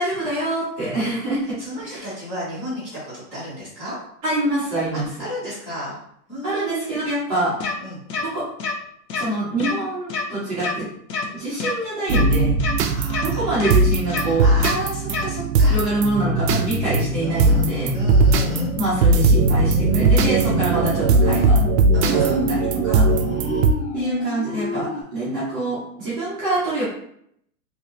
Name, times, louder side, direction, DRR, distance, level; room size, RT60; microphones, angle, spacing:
voice 1, 0.0-1.5 1.8-2.1 4.2-5.3 6.4-7.6 8.3-8.4 9.1-10.9 11.3-12.5 13.2-14.5 15.7-17.9 18.7-21.6 22.0-23.0 23.9-26.8, right 2 dB, 25° right, -10 dB, 1.0 m, -25 dB
voice 2, 1.6-4.0 4.9-6.0 6.3-7.0 7.8-8.0 12.8-13.4 13.7-15.8 17.2-17.7 17.9-18.7 21.9-22.4 23.1-23.7, equal, 5° left, -14 dB, 1.1 m, -33 dB
sound 1, 7.6-7.7 8.1-8.2 8.6-8.7 9.1-9.3 9.6-9.7 10.1-10.2 10.6-10.7 11.1-11.3 11.6-11.7 12.1-12.2 12.6-12.7 13.1-13.3 13.6-13.7 14.1-14.2 14.6-14.7 15.1-15.3, left 4 dB, 90° left, 0.8 m, -26 dB
sound 2, 12.1-23.7, right 3 dB, 75° right, 0.6 m, -19 dB
sound 3, 16.0-25.0, left 4 dB, 45° left, 0.5 m, -28 dB
3.2 x 2.8 x 2.6 m, 0.71 s
hypercardioid pair, 170°, 48 cm